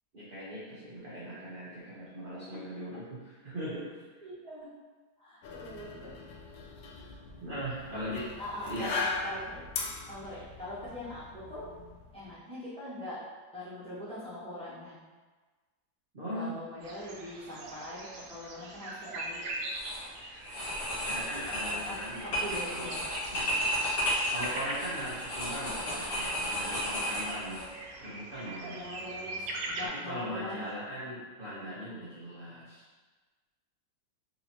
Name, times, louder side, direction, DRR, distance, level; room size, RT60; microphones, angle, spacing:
voice 1, 0.1-3.8 7.4-8.2 8.6-8.9 10.2-10.4 16.1-16.6 21.1-23.0 23.3-23.7 24.3-27.6 28.0-28.8 30.0-32.8, equal, 55° right, -10 dB, 0.6 m, -40 dB
voice 2, 4.2-4.7 5.2-6.1 7.9-8.1 8.4-9.6 10.1-11.6 12.1-13.2 13.5-15.0 16.3-19.4 21.7-22.0 22.4-23.0 28.6-30.7, left 1 dB, 5° left, -13 dB, 1.0 m, -42 dB
sound 1, 5.4-12.3, left 4 dB, 85° left, 1.3 m, -40 dB
sound 2, 16.8-29.9, right 2 dB, 75° right, 1.0 m, -42 dB
sound 3, 19.6-20.0 20.4-27.7, equal, 70° left, 2.1 m, -33 dB
4.1 x 2.6 x 2.8 m, 1.3 s
omnidirectional pair, 2.0 m